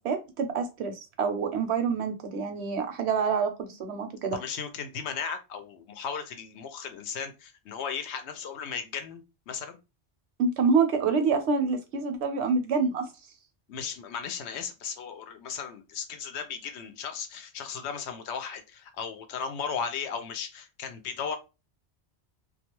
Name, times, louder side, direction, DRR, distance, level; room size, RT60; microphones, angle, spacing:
voice 1, 0.0-4.4 10.4-13.1, right 5 dB, 80° right, 0.9 m, -27 dB
voice 2, 4.3-9.8 13.7-21.4, left 6 dB, 80° left, 0.9 m, -36 dB
2.3 x 2.3 x 2.9 m
omnidirectional pair, 1.1 m